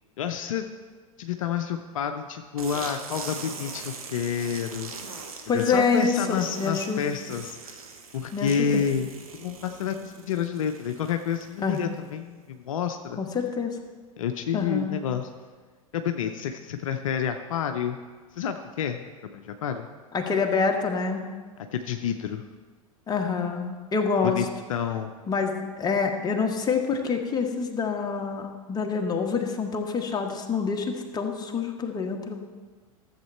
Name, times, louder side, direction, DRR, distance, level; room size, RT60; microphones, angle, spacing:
voice 1, 0.2-0.7 1.2-4.9 5.5-7.8 8.1-9.1 9.3-13.2 14.2-15.3 15.9-18.0 18.3-19.9 21.7-22.4 24.2-25.1, left 8 dB, 65° left, 6 dB, 0.6 m, -29 dB
sound 1, 2.6-12.1, right 4 dB, 80° right, 1.2 m, -42 dB
voice 2, 5.5-7.0 8.3-8.8 11.6-11.9 13.2-13.8 14.5-15.0 20.1-21.2 23.1-24.5 25.3-32.4, left 5 dB, 20° left, 3 dB, 1.3 m, -26 dB
13.5 x 7.4 x 4.4 m, 1.4 s
figure-of-eight pair, 90°, 18 cm